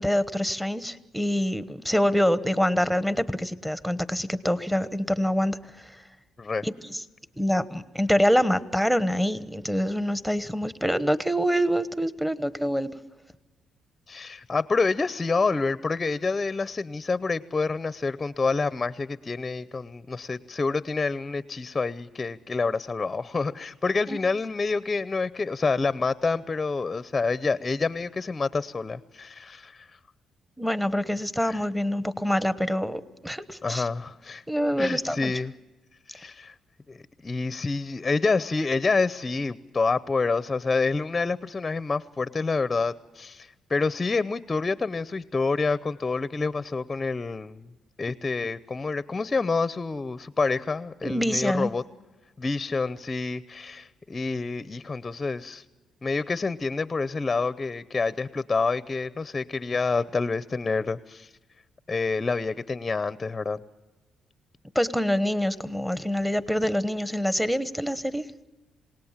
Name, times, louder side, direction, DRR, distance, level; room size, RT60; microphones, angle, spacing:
voice 1, 0.0-6.0 6.6-7.0 7.4-13.0 24.1-24.2 30.6-33.9 34.5-35.3 51.0-51.7 64.7-68.2, equal, ahead, 13 dB, 1.1 m, -26 dB
voice 2, 14.1-29.9 31.5-31.6 33.6-34.4 34.8-35.5 36.1-36.5 36.9-37.0 37.2-47.6 48.0-51.8 52.4-55.6 56.0-61.3 61.9-63.6, left 4 dB, 25° left, 15 dB, 0.7 m, -27 dB
27.5 x 18.5 x 7.3 m, 1.2 s
cardioid pair, 90°, 0 cm